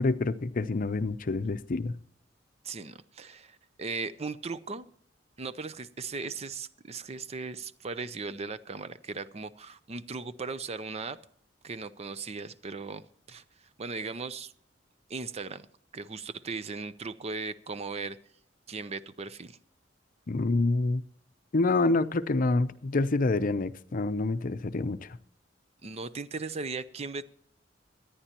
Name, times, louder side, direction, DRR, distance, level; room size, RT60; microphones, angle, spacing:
voice 1, 0.0-1.9 20.3-21.0 21.5-25.2, left 3 dB, 45° left, 0.6 m, -27 dB
voice 2, 2.6-4.9 5.4-11.2 11.6-14.5 15.1-15.7 15.9-18.2 18.7-19.6 25.8-27.2, right 4 dB, 35° right, 0.5 m, -38 dB
24.0 x 10.0 x 2.9 m
head